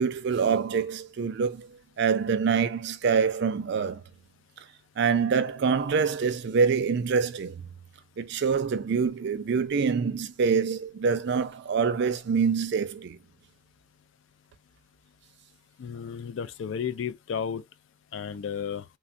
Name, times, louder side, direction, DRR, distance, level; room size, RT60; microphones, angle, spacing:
voice 1, 0.0-1.7 2.0-4.0 5.0-7.6 8.2-13.2, right 5 dB, 60° right, 0.4 m, -25 dB
voice 2, 15.8-17.6 18.1-18.8, left 7 dB, 70° left, 0.3 m, -33 dB
3.4 x 2.2 x 2.5 m
head